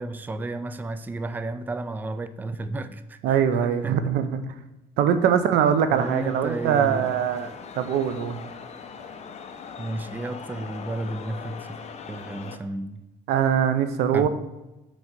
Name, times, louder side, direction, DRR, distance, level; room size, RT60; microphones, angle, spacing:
voice 1, 0.0-3.4 3.8-4.0 5.9-7.1 9.8-11.8 12.1-13.0 14.1-14.3, right 2 dB, 10° right, 11 dB, 0.4 m, -32 dB
voice 2, 3.2-4.4 5.0-7.5 7.8-8.4 13.3-14.3, right 8 dB, 85° right, 10 dB, 0.7 m, -22 dB
sound 1, 6.0-12.6, left 6 dB, 40° left, 0.8 m, -41 dB
6.3 x 5.0 x 5.9 m, 1.0 s
cardioid pair, 110°, 17 cm